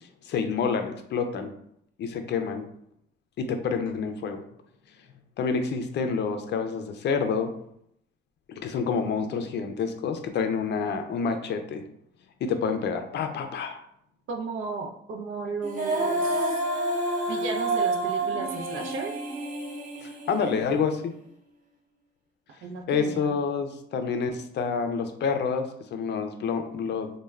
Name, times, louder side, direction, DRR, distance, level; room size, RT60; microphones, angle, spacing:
voice 1, 0.2-1.5 2.0-2.7 3.4-4.4 5.4-7.5 8.5-11.8 12.4-13.8 20.0-21.1 22.9-27.1, left 5 dB, 60° left, 6 dB, 0.4 m, -28 dB
voice 2, 14.3-16.6 17.3-19.1 22.6-23.4, right 4 dB, 80° right, 3 dB, 0.5 m, -34 dB
Female singing, 15.6-20.8, right 2 dB, 40° right, 0.8 m, -29 dB
2.3 x 2.2 x 3.2 m, 0.72 s
cardioid pair, 90°, 20 cm